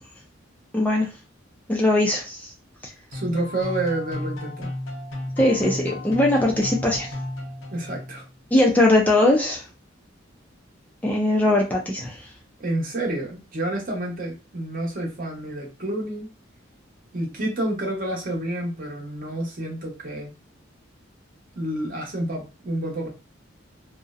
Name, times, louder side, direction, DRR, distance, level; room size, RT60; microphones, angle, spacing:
voice 1, 0.7-1.1 1.7-2.5 5.4-7.1 8.5-9.7 11.0-12.3, left 1 dB, 10° left, 0.3 m, -20 dB
sound 1, 3.1-8.3, left 1 dB, 90° left, 0.7 m, -33 dB
voice 2, 3.1-4.7 7.7-8.3 12.6-16.3 17.1-20.3 21.6-23.1, right 1 dB, 45° right, 0.8 m, -29 dB
2.6 x 2.0 x 2.3 m
head